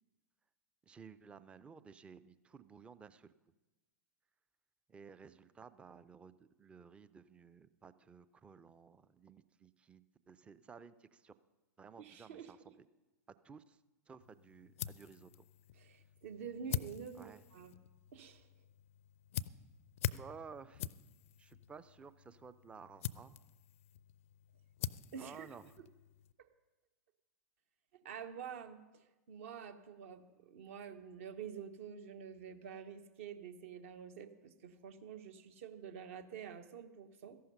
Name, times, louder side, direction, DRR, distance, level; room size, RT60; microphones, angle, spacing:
voice 1, 0.8-3.3 4.9-11.4 11.8-12.8 13.4-13.8 14.1-15.3 17.1-17.9 20.1-20.8 21.4-23.4 25.1-25.8, right 5 dB, 10° right, 15 dB, 0.4 m, -55 dB
voice 2, 12.0-12.5 15.8-17.7 18.1-18.4 25.1-25.5 26.4-26.5 28.0-37.4, right 7 dB, 55° right, 10 dB, 1.0 m, -48 dB
sound 1, 14.2-26.3, left 11 dB, 55° left, 0.4 m, -45 dB
14.0 x 11.5 x 5.4 m, 1.1 s
figure-of-eight pair, 95°, 9 cm